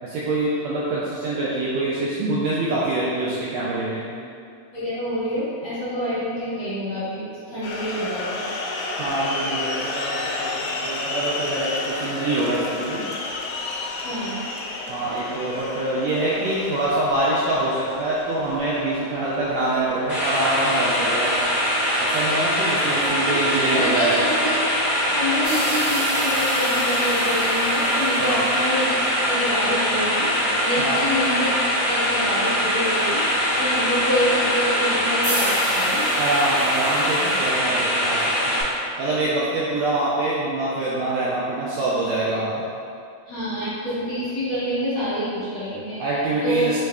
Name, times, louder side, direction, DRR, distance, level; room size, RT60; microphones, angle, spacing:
voice 1, 0.0-4.1 9.0-13.0 14.9-21.4 22.0-24.2 28.2-28.4 30.8-31.1 36.2-38.7 39.0-42.6 46.0-46.8, right 2 dB, 85° right, -7 dB, 1.5 m, -25 dB
voice 2, 4.7-8.5 14.0-14.4 23.0-24.6 25.1-36.1 43.3-46.0 46.4-46.8, equal, 60° left, -12 dB, 1.4 m, -27 dB
sound 1, 7.6-23.1, left 2 dB, 90° left, 2.0 m, -32 dB
sound 2, 20.1-38.6, equal, 30° left, 1.0 m, -22 dB
sound 3, 25.4-28.9 35.2-37.6, equal, 50° right, 1.5 m, -33 dB
4.8 x 3.2 x 2.2 m, 2.4 s
omnidirectional pair, 3.4 m